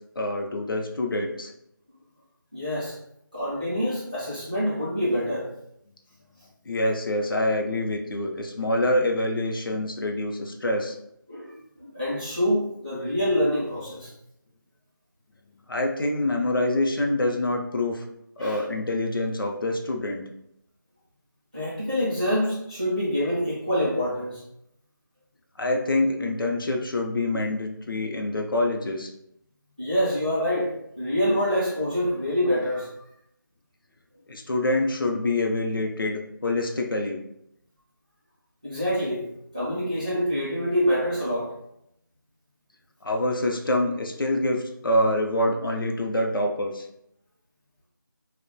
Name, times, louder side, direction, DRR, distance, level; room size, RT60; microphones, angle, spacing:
voice 1, 0.2-1.5 6.7-11.0 15.7-18.0 18.4-20.2 25.6-29.1 34.3-37.2 43.0-46.9, left 1 dB, 80° left, 3 dB, 0.5 m, -26 dB
voice 2, 2.5-2.9 3.3-5.5 11.3-14.1 18.4-18.6 21.5-24.4 29.8-32.9 38.6-39.2 39.5-41.5, equal, 20° right, -10 dB, 0.4 m, -26 dB
2.3 x 2.0 x 2.6 m, 0.77 s
figure-of-eight pair, 180°, 11 cm